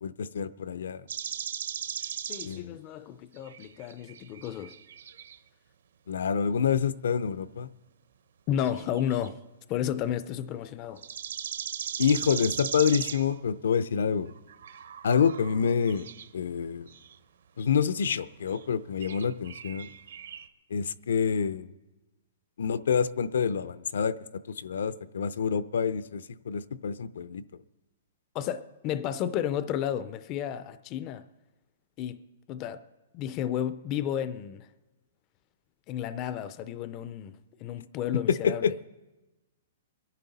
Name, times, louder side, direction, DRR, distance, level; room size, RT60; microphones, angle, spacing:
voice 1, 0.0-1.0 2.4-2.8 6.1-7.7 12.0-14.3 15.0-16.1 16.3-16.9 17.6-19.9 20.7-21.7 22.6-24.1 24.6-27.4 38.4-38.7, left 7 dB, 75° left, 0.5 m, -27 dB
sound 1, 1.1-2.6 3.4-5.4 8.7-9.3 11.0-13.4 14.3-16.3 16.9-17.2 17.7-17.8 18.5-18.7 19.0-20.5, right 8 dB, 65° right, 0.8 m, -38 dB
voice 2, 2.3-4.7 8.5-9.4 9.7-11.0 28.3-31.2 32.0-32.2 32.5-32.8 33.1-34.7 35.9-38.7, left 10 dB, 20° left, 0.3 m, -32 dB
22.5 x 10.5 x 4.1 m
hypercardioid pair, 180°, 0 cm